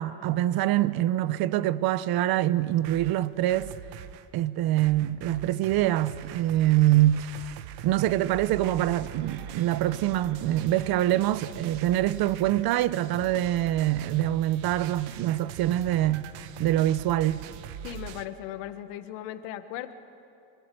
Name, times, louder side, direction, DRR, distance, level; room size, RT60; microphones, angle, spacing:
voice 1, 0.0-3.7 4.3-7.4 7.8-16.3 16.6-17.4, right 14 dB, 55° right, 1.0 m, -25 dB
sound 1, 2.6-4.3 4.8-18.3, right 10 dB, 85° right, 1.3 m, -43 dB
voice 2, 17.8-19.9, left 12 dB, 85° left, 1.6 m, -37 dB
24.5 x 23.5 x 9.4 m
cardioid pair, 130°, 43 cm